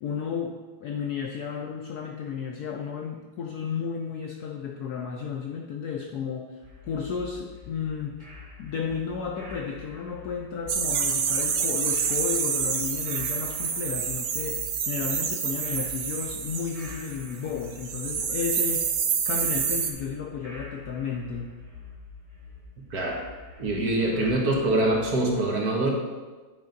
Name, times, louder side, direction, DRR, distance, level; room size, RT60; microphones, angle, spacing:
voice 1, 0.0-8.3 8.6-19.0 19.2-21.5, left 6 dB, 75° left, 2 dB, 0.9 m, -33 dB
sound 1, 6.6-25.3, left 3 dB, 20° right, 1.2 m, -46 dB
sound 2, 10.7-17.4 17.6-19.9, right 6 dB, 80° right, 0.7 m, -28 dB
voice 2, 22.9-23.2 23.6-25.9, right 2 dB, 55° right, 0 dB, 1.5 m, -24 dB
9.3 x 3.7 x 5.1 m, 1.3 s
omnidirectional pair, 2.2 m